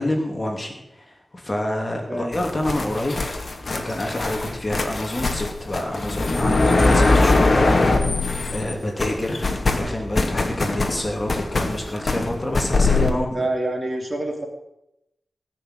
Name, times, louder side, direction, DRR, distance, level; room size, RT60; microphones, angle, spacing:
voice 1, 0.0-3.2 3.6-8.1 8.5-13.3, left 1 dB, 25° left, 2 dB, 2.8 m, -28 dB
voice 2, 2.1-2.4 12.8-14.5, right 1 dB, 25° right, 2 dB, 3.2 m, -27 dB
sound 1, 2.3-8.7 9.0-13.1, left 2 dB, 40° left, 2.1 m, -22 dB
18.5 x 6.7 x 9.6 m, 0.87 s
wide cardioid pair, 120°, 0 cm